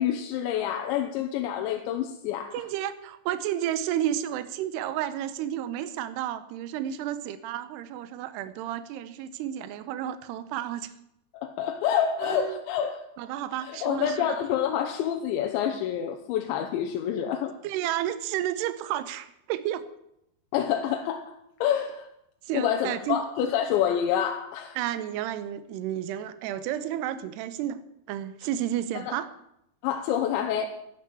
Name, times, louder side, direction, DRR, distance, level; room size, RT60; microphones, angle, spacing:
voice 1, 0.0-2.6 11.4-13.0 13.6-17.5 20.5-21.4 21.6-22.1 22.5-24.8 29.0-29.2 29.8-30.7, left 9 dB, 85° left, 4 dB, 3.2 m, -27 dB
voice 2, 2.5-10.9 12.2-12.6 13.2-14.4 17.6-19.8 22.5-23.2 24.8-27.8 28.1-29.3, right 11 dB, 75° right, 13 dB, 2.8 m, -31 dB
11.0 x 11.0 x 7.6 m, 0.80 s
omnidirectional pair, 5.2 m